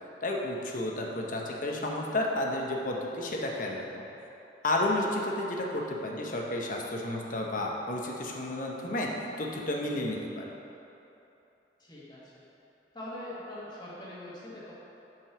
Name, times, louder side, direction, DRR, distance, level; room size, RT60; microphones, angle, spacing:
voice 1, 0.2-4.0 4.6-9.1 9.4-10.5, left 1 dB, 50° left, -1 dB, 0.9 m, -31 dB
voice 2, 11.8-12.4 12.9-14.7, left 1 dB, 25° left, -7 dB, 1.6 m, -43 dB
5.6 x 5.3 x 6.0 m, 3.0 s
head